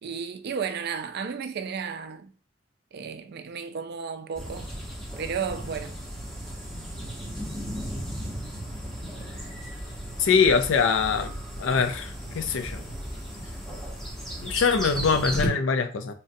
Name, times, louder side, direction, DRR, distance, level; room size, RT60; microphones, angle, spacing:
voice 1, 0.0-2.3 2.9-4.8 5.2-6.0, right 6 dB, 55° right, 0.4 m, -33 dB
sound 1, 4.3-15.5, equal, ahead, 0.9 m, -35 dB
voice 2, 10.2-11.3 11.6-12.8 14.4-16.1, left 5 dB, 70° left, 0.4 m, -23 dB
3.9 x 2.1 x 2.6 m
head